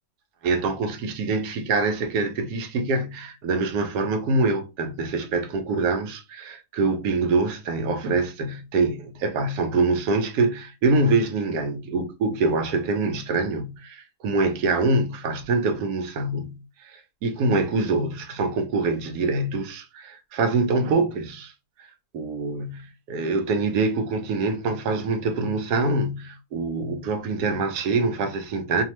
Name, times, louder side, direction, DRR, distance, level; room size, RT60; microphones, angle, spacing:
voice 1, 0.4-21.5 21.8-21.9 22.1-28.8, right 3 dB, 85° right, 1.2 m, -25 dB
3.0 x 2.0 x 2.9 m
omnidirectional pair, 1.6 m